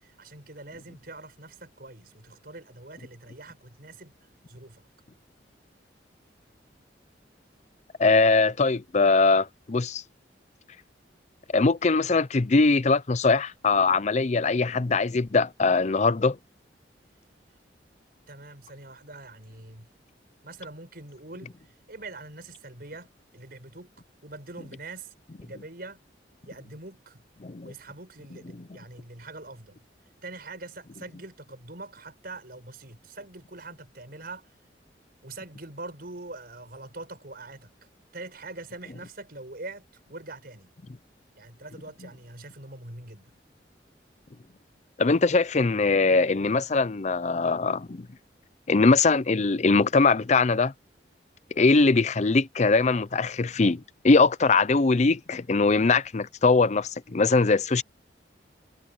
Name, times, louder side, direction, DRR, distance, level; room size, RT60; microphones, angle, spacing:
voice 1, 0.0-4.1 4.5-4.9 18.3-19.9 20.4-21.5 21.9-23.9 24.2-25.1 25.4-26.0 26.4-27.2 27.6-29.8 30.2-34.5 35.2-37.7 38.1-40.7 41.4-43.3, right 2 dB, 55° right, 6.0 m, -43 dB
voice 2, 8.0-10.0 11.5-16.4 27.4-27.7 28.5-28.7 45.0-48.1 48.7-50.7 51.6-57.8, left 3 dB, 40° left, 0.6 m, -22 dB
head